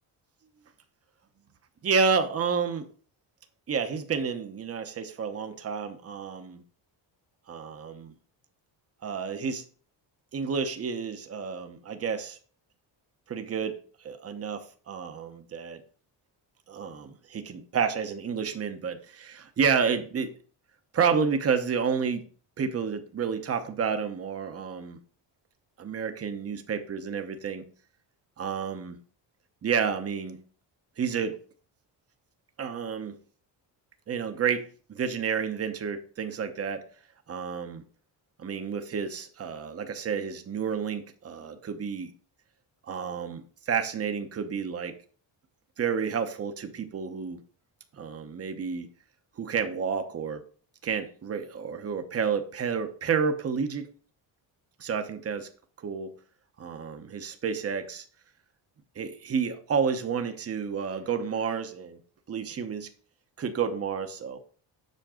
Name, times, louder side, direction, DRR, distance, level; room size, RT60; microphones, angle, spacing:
voice 1, 1.8-2.9 3.7-6.6 7.5-8.1 9.0-9.6 10.3-12.4 13.3-15.8 16.7-20.3 20.9-22.3 22.6-25.0 25.8-27.6 28.4-29.0 29.6-30.4 31.0-31.4 32.6-33.1 34.1-36.8 37.3-37.8 38.4-42.1 42.9-44.9 45.8-47.4 47.9-48.9 49.4-50.4 50.8-53.9 54.8-55.5 55.8-56.1 56.6-58.0 59.0-62.0 62.3-62.9 63.4-64.4, right 6 dB, 30° right, 7 dB, 0.9 m, -30 dB
7.7 x 5.8 x 3.7 m, 0.42 s
cardioid pair, 145°, 45 cm